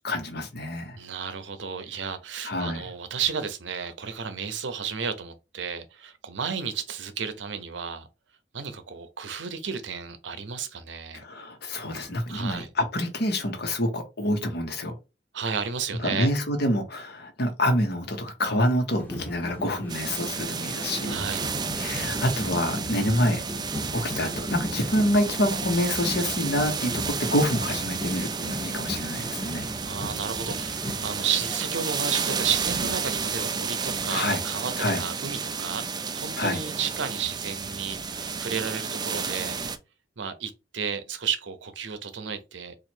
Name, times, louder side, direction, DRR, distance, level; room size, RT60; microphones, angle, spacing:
voice 1, 0.0-1.0 2.4-2.8 11.1-14.9 16.0-21.1 21.8-23.4 23.9-29.7 34.1-34.4 34.8-35.0 36.4-36.6, left 1 dB, 60° left, 1.0 m, -27 dB
voice 2, 0.9-8.1 8.5-11.2 12.3-12.7 15.3-16.3 21.1-21.4 29.8-39.6 40.2-42.8, right 7 dB, 80° right, 0.6 m, -32 dB
sound 1, 19.0-33.0, left 1 dB, 10° left, 0.9 m, -37 dB
sound 2, 19.9-39.8, right 5 dB, 25° right, 0.4 m, -32 dB
3.0 x 2.5 x 4.4 m
head